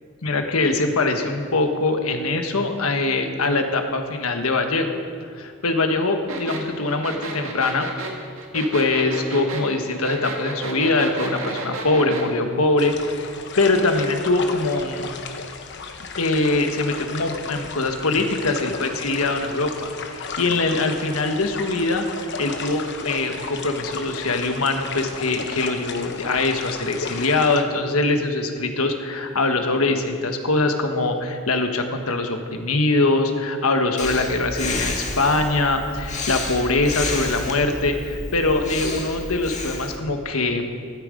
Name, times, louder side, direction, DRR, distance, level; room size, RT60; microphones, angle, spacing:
voice 1, 0.2-4.9 5.4-7.9 8.5-15.1 16.2-40.7, left 2 dB, 80° left, 5 dB, 1.3 m, -23 dB
sound 1, 6.3-12.3, right 2 dB, 65° right, 2.0 m, -32 dB
sound 2, 12.8-27.6, left 4 dB, 55° left, 1.0 m, -34 dB
Breathing, 34.0-40.0, left 3 dB, 35° left, 1.6 m, -30 dB
13.5 x 12.0 x 5.1 m, 2.1 s
head